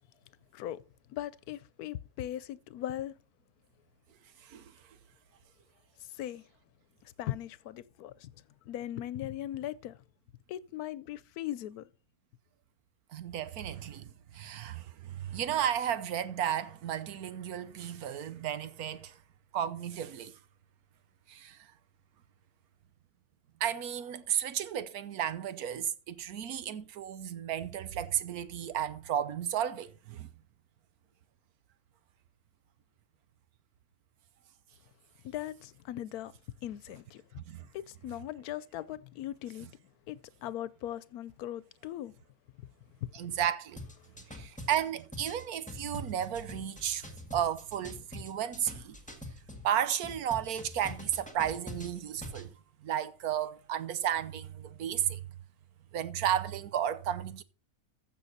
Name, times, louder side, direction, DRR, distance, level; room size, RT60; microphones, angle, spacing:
voice 1, 0.5-0.8 1.1-3.1 6.1-6.4 7.0-8.3 8.7-10.0 10.5-11.9 35.2-36.3 36.6-37.4 37.7-39.7 40.1-42.1 43.0-43.1, left 12 dB, 85° left, 1.1 m, -39 dB
voice 2, 4.4-4.7 13.1-19.2 19.5-20.4 21.3-21.7 23.6-30.3 37.5-37.6 39.6-39.7 43.1-43.8 44.3-49.0 49.6-52.5 52.8-55.2 55.9-57.4, right 10 dB, 80° right, 1.3 m, -33 dB
sound 1, 43.8-49.7 50.0-52.5, left 2 dB, 5° left, 1.7 m, -45 dB
14.5 x 6.3 x 4.1 m
omnidirectional pair, 1.6 m